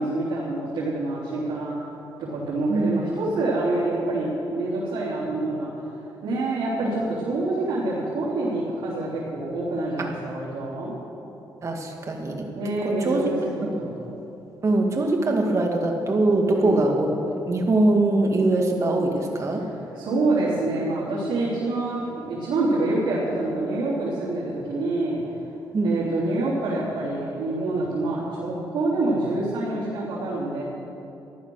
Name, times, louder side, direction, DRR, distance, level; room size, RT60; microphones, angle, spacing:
voice 1, 0.0-1.8 2.3-5.7 6.2-11.0 12.5-13.9 16.5-16.8 19.9-25.2 25.8-30.6, right 2 dB, 85° right, -10 dB, 3.9 m, -26 dB
voice 2, 2.7-3.1 10.0-10.1 11.6-12.4 13.0-13.3 13.6-13.7 14.6-17.1 17.5-19.6 25.7-25.9, right 2 dB, 40° right, 1 dB, 2.1 m, -22 dB
14.5 x 11.5 x 6.6 m, 2.9 s
cardioid pair, 105°, 8 cm